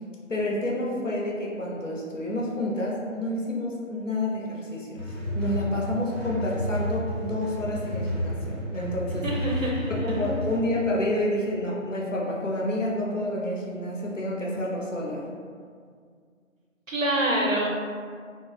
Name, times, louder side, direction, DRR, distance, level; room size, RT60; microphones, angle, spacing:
voice 1, 0.3-5.0 5.3-9.3 9.9-15.2, left 1 dB, 65° left, -4 dB, 0.7 m, -29 dB
sound 1, 5.0-10.6, equal, 55° right, 1.3 m, -31 dB
voice 2, 9.2-10.2 16.9-17.7, right 1 dB, 70° right, -2 dB, 0.7 m, -26 dB
2.4 x 2.3 x 2.9 m, 2.1 s
figure-of-eight pair, 170°, 41 cm